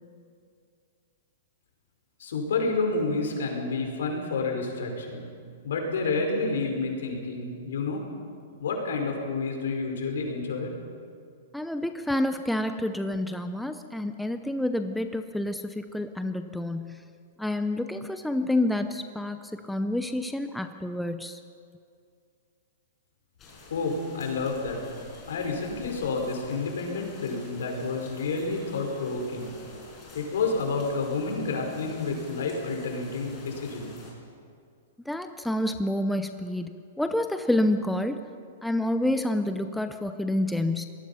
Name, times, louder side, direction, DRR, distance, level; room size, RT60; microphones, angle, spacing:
voice 1, 2.2-5.3 5.6-8.0 8.6-10.7 23.7-24.8 25.3-29.5 30.1-33.9, left 3 dB, 80° left, 2 dB, 5.3 m, -29 dB
voice 2, 11.5-17.0 17.4-19.4 19.7-21.4 35.1-36.7 37.0-38.2 38.6-40.9, left 1 dB, ahead, 7 dB, 0.6 m, -28 dB
sound 1, 23.4-34.1, left 2 dB, 15° left, 5.2 m, -48 dB
25.0 x 19.5 x 5.7 m, 2.3 s
hypercardioid pair, 170°, 0 cm